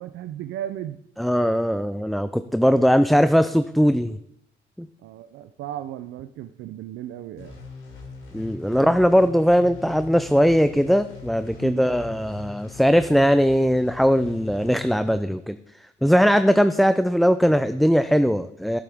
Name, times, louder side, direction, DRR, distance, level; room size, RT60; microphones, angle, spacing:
voice 1, 0.0-1.0 5.0-7.6 8.7-8.8 11.6-11.9, right 11 dB, 85° right, 10 dB, 0.5 m, -35 dB
voice 2, 1.2-4.2 4.8-4.9 8.3-18.8, equal, ahead, 11 dB, 0.5 m, -20 dB
sound 1, 7.4-15.2, left 4 dB, 80° left, 3.7 m, -41 dB
15.5 x 8.4 x 3.6 m, 0.76 s
cardioid pair, 90°, 20 cm